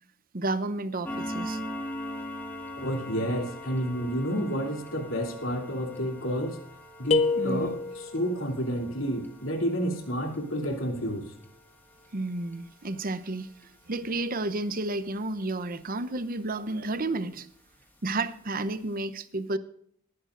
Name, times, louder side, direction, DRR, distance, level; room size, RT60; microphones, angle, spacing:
voice 1, 0.3-1.6 7.3-7.7 12.1-13.5 13.9-17.5 18.0-19.6, right 2 dB, 45° right, 14 dB, 0.8 m, -31 dB
sound 1, 1.0-16.2 16.5-16.7 17.2-17.3 17.7-17.8 18.3-18.4 18.7-18.8, equal, 10° left, 1.9 m, -42 dB
voice 2, 2.8-6.6 7.0-11.3, equal, 90° left, 3 dB, 2.9 m, -30 dB
sound 2, 7.1-8.3, left 3 dB, 35° left, 0.7 m, -26 dB
20.5 x 10.5 x 2.5 m, 0.65 s
head